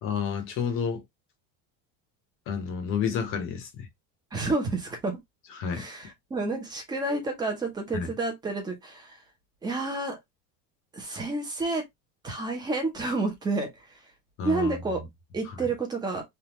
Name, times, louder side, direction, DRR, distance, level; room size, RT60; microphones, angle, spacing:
voice 1, 0.0-1.0 2.5-3.9 5.5-5.9 7.9-8.1 14.4-15.1 15.5-15.6, left 6 dB, 35° left, 0.7 m, -30 dB
voice 2, 4.3-5.2 5.7-9.2 9.6-10.2 10.9-11.8 12.2-14.0 14.4-15.0 15.3-16.2, right 3 dB, 10° right, 0.6 m, -30 dB
3.4 x 2.3 x 2.9 m
cardioid pair, 180°, 39 cm